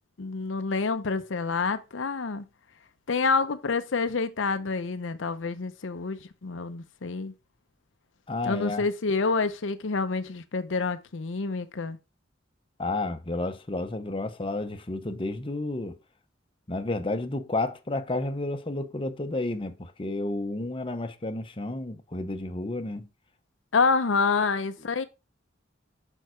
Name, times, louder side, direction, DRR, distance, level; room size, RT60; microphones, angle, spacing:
voice 1, 0.2-2.4 3.1-7.3 8.5-12.0 23.7-25.0, left 4 dB, 80° left, 0.7 m, -27 dB
voice 2, 8.3-8.9 12.8-16.0 16.7-23.1, left 2 dB, 30° left, 0.8 m, -31 dB
6.6 x 5.4 x 4.5 m
head